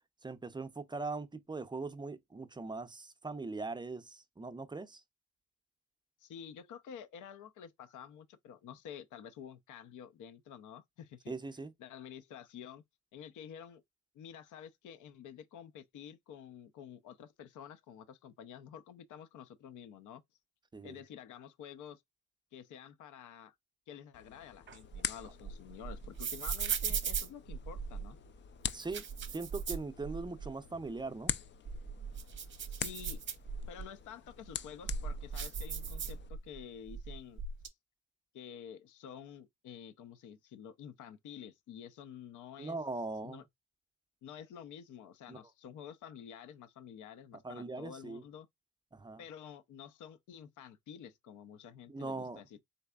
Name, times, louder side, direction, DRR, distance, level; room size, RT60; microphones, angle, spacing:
voice 1, 0.2-5.0 11.3-11.7 20.7-21.0 28.7-29.0 29.3-31.3 42.6-43.4 45.3-45.4 47.4-48.2 48.9-49.2 51.9-52.4, right 3 dB, 15° right, 0.5 m, -40 dB
voice 2, 6.2-11.3 11.8-12.8 13.1-13.8 14.1-20.2 20.8-22.0 22.5-23.5 23.9-28.2 32.7-33.2 33.7-37.4 38.3-42.8 43.2-43.4 44.2-48.5 49.2-52.6, left 8 dB, 80° left, 0.7 m, -50 dB
sound 1, 24.1-36.3, left 9 dB, 40° left, 0.4 m, -45 dB
sound 2, 24.7-28.1 28.7-30.5 30.9-31.0 31.5-33.9 34.4-36.6 36.9-37.7, right 6 dB, 40° right, 0.8 m, -38 dB
4.0 x 3.3 x 2.3 m
cardioid pair, 90°, 30 cm